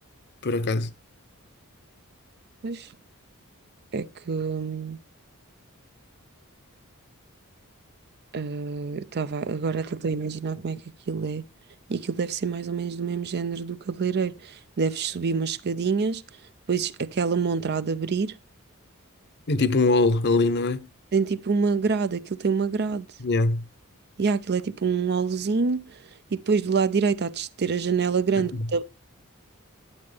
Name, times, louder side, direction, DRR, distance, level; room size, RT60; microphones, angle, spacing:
voice 1, 0.4-0.9 19.5-20.9 23.2-23.6, left 3 dB, 50° left, 0.8 m, -22 dB
voice 2, 3.9-5.0 8.3-10.8 11.1-11.4 11.9-16.2 16.7-18.4 21.1-23.1 24.2-25.9 26.3-28.8, right 5 dB, 50° right, 0.5 m, -26 dB
11.5 x 8.6 x 3.4 m
head